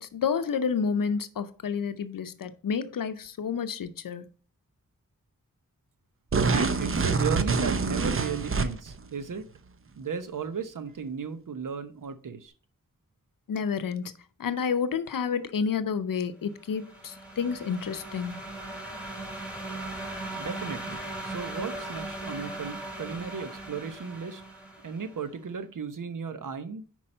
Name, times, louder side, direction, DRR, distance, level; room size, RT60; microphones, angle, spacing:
voice 1, 0.0-4.3 13.5-18.4, left 6 dB, 80° left, 0.6 m, -30 dB
sound 1, 6.3-9.0, right 4 dB, 40° right, 0.7 m, -26 dB
voice 2, 6.5-9.5 10.0-12.5 20.3-24.4 24.8-26.8, right 6 dB, 70° right, 0.9 m, -35 dB
sound 2, 16.6-25.2, right 1 dB, 5° right, 3.8 m, -38 dB
5.5 x 4.7 x 5.4 m
cardioid pair, 40°, 33 cm